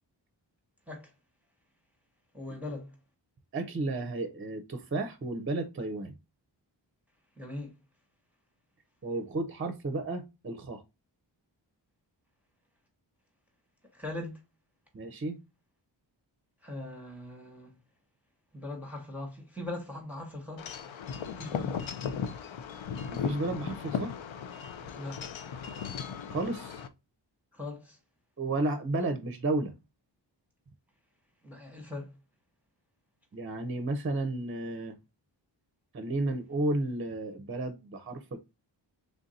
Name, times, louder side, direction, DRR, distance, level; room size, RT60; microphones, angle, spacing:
voice 1, 2.3-3.0 7.4-7.7 13.9-14.4 16.6-17.7 18.5-20.7 21.4-22.2 25.0-25.3 27.5-28.0 31.4-32.1, left 2 dB, 5° right, 0.9 m, -40 dB
voice 2, 3.5-6.1 9.0-10.8 14.9-15.4 23.1-24.1 26.3-26.8 28.4-29.7 33.3-34.9 35.9-38.4, right 2 dB, 30° right, 0.5 m, -32 dB
Wind chime / Wind, 20.6-26.9, left 7 dB, 90° left, 0.6 m, -37 dB
3.4 x 2.6 x 4.0 m
wide cardioid pair, 120°, 45 cm